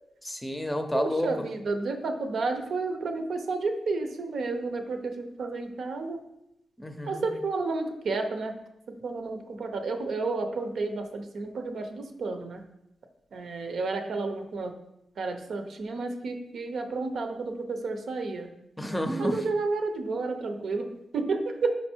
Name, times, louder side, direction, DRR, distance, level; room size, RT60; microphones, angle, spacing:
voice 1, 0.2-1.3 6.8-7.2 18.8-19.4, equal, 10° left, 7 dB, 0.6 m, -30 dB
voice 2, 0.9-6.2 7.1-8.5 8.9-12.6 13.3-14.7 15.2-18.5 19.2-21.8, right 3 dB, 75° right, 6 dB, 0.7 m, -31 dB
5.2 x 4.4 x 4.4 m, 0.84 s
cardioid pair, 95°, 0 cm